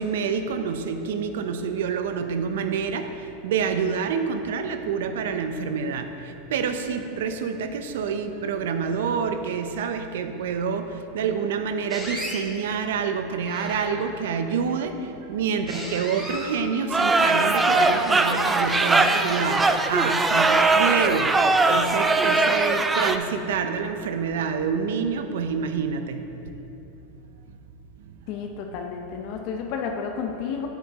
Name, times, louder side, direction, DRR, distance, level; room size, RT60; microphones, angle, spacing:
voice 1, 0.0-3.1 3.4-6.1 6.5-10.9 11.1-21.3 21.7-26.3, right 6 dB, 75° right, 8 dB, 0.5 m, -27 dB
sound 1, 11.9-12.4 13.4-14.2 15.7-16.6 17.4-20.9, equal, 10° left, 1.3 m, -37 dB
sound 2, 16.9-23.2, right 3 dB, 15° right, 0.4 m, -20 dB
voice 2, 28.3-30.7, left 6 dB, 55° left, 3 dB, 0.6 m, -31 dB
7.4 x 7.3 x 3.6 m, 3.0 s
hypercardioid pair, 115°, 0 cm